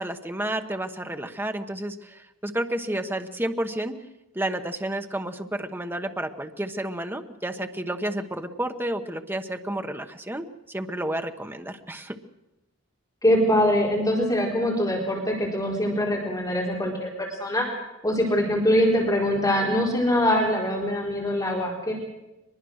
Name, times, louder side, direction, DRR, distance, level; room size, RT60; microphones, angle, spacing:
voice 1, 0.0-4.0 4.3-12.2, right 1 dB, 10° right, 7 dB, 1.1 m, -31 dB
voice 2, 13.2-17.7 18.0-21.9, left 1 dB, 20° left, -2 dB, 4.4 m, -23 dB
23.5 x 21.0 x 6.5 m, 0.96 s
head